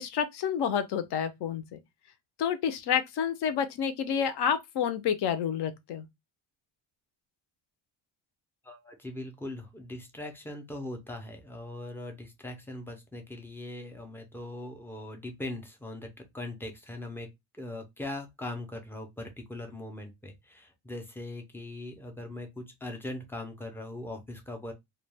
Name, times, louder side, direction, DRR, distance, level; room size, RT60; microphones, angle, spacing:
voice 1, 0.0-1.8 2.4-6.0, left 8 dB, 60° left, 0.5 m, -29 dB
voice 2, 8.6-17.3 17.6-24.7, left 1 dB, 5° left, 0.3 m, -40 dB
2.2 x 2.2 x 3.2 m
cardioid pair, 150°, 47 cm